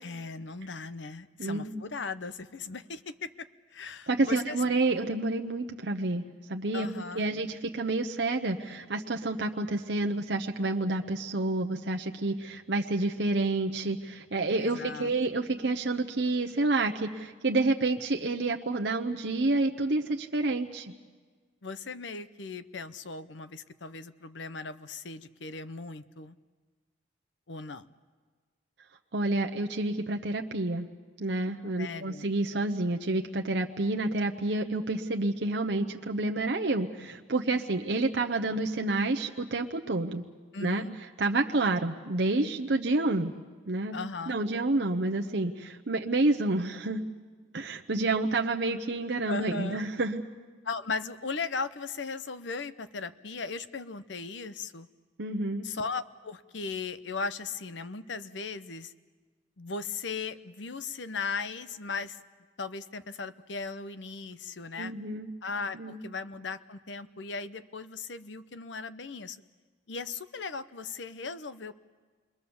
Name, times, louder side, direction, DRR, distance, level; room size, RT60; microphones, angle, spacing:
voice 1, 0.0-4.6 6.7-7.3 14.6-15.1 21.6-26.4 27.5-27.9 31.8-32.3 40.5-41.0 43.9-44.4 49.3-49.8 50.6-54.9 55.6-58.9 59.6-62.2 62.6-64.9 65.4-69.4 69.9-71.7, left 4 dB, 80° left, 13 dB, 0.9 m, -37 dB
voice 2, 1.4-1.8 4.1-6.2 6.5-6.9 7.2-20.9 29.1-30.9 31.2-40.2 40.6-40.8 41.2-43.3 43.7-43.9 44.3-47.0 47.5-50.2 55.2-55.7 64.8-65.3 65.7-66.0, right 2 dB, 70° right, 3 dB, 0.9 m, -29 dB
29.0 x 22.0 x 7.1 m, 1.5 s
head